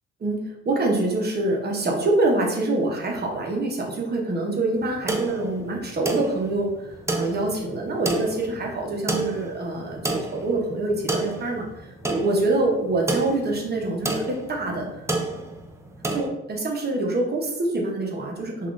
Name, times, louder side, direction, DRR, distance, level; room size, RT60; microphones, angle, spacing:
voice 1, 0.2-15.1 16.1-18.7, right 2 dB, 35° right, 0 dB, 0.7 m, -25 dB
sound 1, 4.8-16.3, right 2 dB, 10° right, 0.4 m, -30 dB
3.3 x 2.4 x 2.4 m, 0.91 s
cardioid pair, 90°, 30 cm